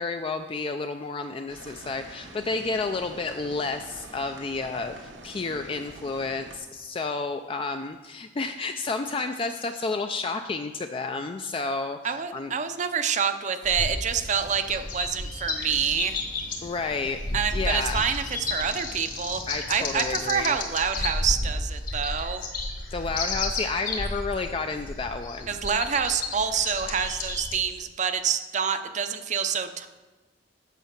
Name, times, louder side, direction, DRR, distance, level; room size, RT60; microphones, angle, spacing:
voice 1, 0.0-12.5 16.6-17.2 17.5-18.0 19.5-20.6 22.9-25.5, left 3 dB, 30° left, 6 dB, 0.3 m, -31 dB
sound 1, 1.5-6.6, right 2 dB, 90° right, 1.1 m, -46 dB
voice 2, 12.0-16.2 17.3-19.4 19.7-22.4 25.5-29.9, right 7 dB, 40° right, 9 dB, 0.5 m, -27 dB
sound 2, 13.6-27.5, left 2 dB, 50° left, 1.4 m, -32 dB
sound 3, 14.1-20.3, left 1 dB, 80° left, 1.4 m, -48 dB
8.3 x 6.7 x 5.9 m, 1.2 s
head